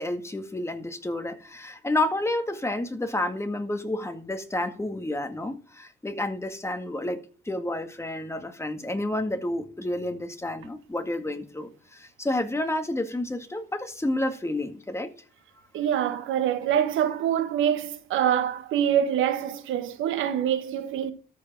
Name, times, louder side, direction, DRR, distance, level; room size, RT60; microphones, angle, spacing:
voice 1, 0.0-15.1, left 1 dB, 15° left, 1.9 m, -30 dB
voice 2, 15.7-21.1, right 9 dB, 85° right, 1.5 m, -25 dB
13.5 x 4.8 x 7.6 m
cardioid pair, 90°, 20 cm